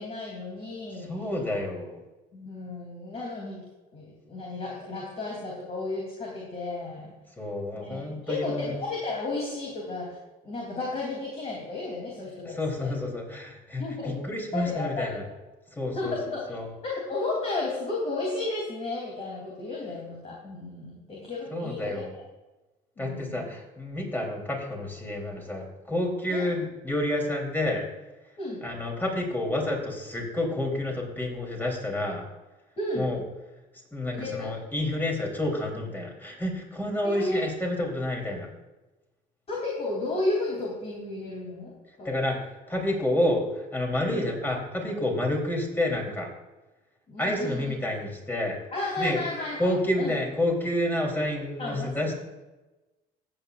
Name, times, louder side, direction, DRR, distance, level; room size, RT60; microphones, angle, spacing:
voice 1, 0.0-1.1 2.3-3.6 3.9-7.1 7.7-10.2 10.4-12.9 13.8-14.2 14.5-15.1 15.8-16.5 16.8-22.1 23.0-23.5 26.3-26.5 28.4-28.6 32.8-33.1 34.1-34.5 37.0-37.5 39.5-42.1 44.1-44.3 47.1-47.7 48.7-50.1 51.6-52.1, left 2 dB, 35° left, -3 dB, 3.3 m, -33 dB
voice 2, 0.9-2.0 7.4-8.7 12.4-15.2 15.7-16.7 21.5-22.1 23.0-27.8 28.6-32.2 33.0-33.2 33.9-38.5 42.0-42.4 42.7-46.3 47.2-48.6 49.0-49.2 49.6-52.1, left 1 dB, 10° left, 0 dB, 3.5 m, -29 dB
15.5 x 8.9 x 2.5 m, 1.1 s
cardioid pair, 110°, 17 cm